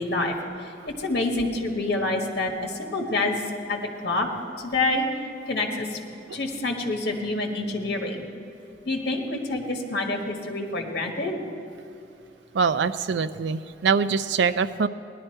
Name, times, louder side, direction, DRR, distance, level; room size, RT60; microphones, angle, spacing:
voice 1, 0.0-3.4 3.7-5.1 5.5-6.0 6.3-8.2 8.8-11.3, left 2 dB, 60° left, 2 dB, 1.4 m, -27 dB
voice 2, 12.5-14.9, right 5 dB, 85° right, 12 dB, 0.4 m, -24 dB
17.0 x 11.0 x 4.5 m, 2.8 s
head